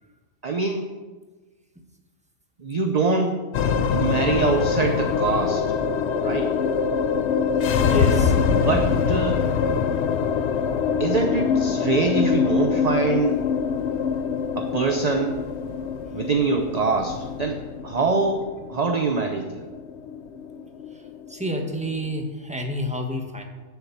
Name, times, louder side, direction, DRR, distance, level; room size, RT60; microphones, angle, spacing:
voice 1, 0.4-0.9 2.6-3.3 3.6-5.6 6.2-6.5 8.5-9.4 11.0-13.4 14.6-15.4 16.1-18.4 18.7-19.6, right 4 dB, 35° right, 5 dB, 0.8 m, -24 dB
sound 1, 3.5-22.0, left 6 dB, 65° left, 0.9 m, -24 dB
voice 2, 7.8-8.4 21.3-23.4, equal, 5° right, 3 dB, 1.3 m, -28 dB
11.5 x 7.1 x 7.2 m, 1.3 s
omnidirectional pair, 1.4 m